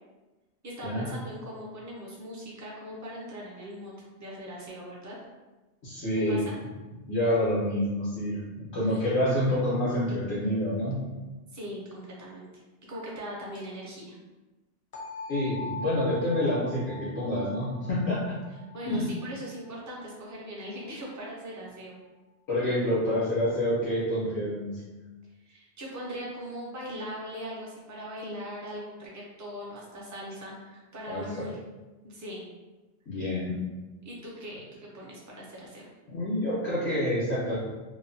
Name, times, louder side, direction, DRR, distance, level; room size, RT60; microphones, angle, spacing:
voice 1, 0.6-3.9 4.2-5.2 6.3-6.5 8.8-9.1 11.5-12.5 12.8-14.2 18.7-22.0 25.5-31.6 32.0-32.5 34.0-35.9, equal, 25° right, -4 dB, 0.4 m, -40 dB
voice 2, 5.8-6.4 7.1-8.4 8.7-11.0 15.3-18.2 18.8-19.0 22.5-24.8 31.1-31.2 33.1-33.5 36.1-37.6, left 1 dB, 75° left, -11 dB, 1.2 m, -27 dB
sound 1, 14.9-20.8, left 2 dB, 45° left, 0.5 m, -42 dB
2.8 x 2.2 x 2.6 m, 1.1 s
omnidirectional pair, 1.1 m